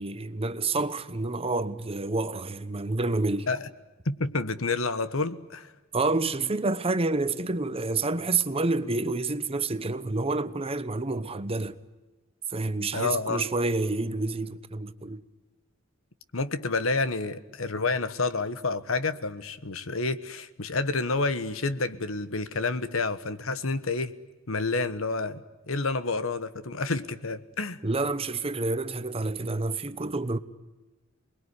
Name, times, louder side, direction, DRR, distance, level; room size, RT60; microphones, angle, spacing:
voice 1, 0.0-3.5 5.9-11.8 12.5-15.2 27.8-30.4, right 3 dB, 30° right, 1.0 m, -28 dB
voice 2, 4.0-5.7 12.9-13.4 16.3-24.1 24.5-27.8, left 3 dB, 70° left, 1.3 m, -29 dB
28.5 x 21.5 x 9.9 m
head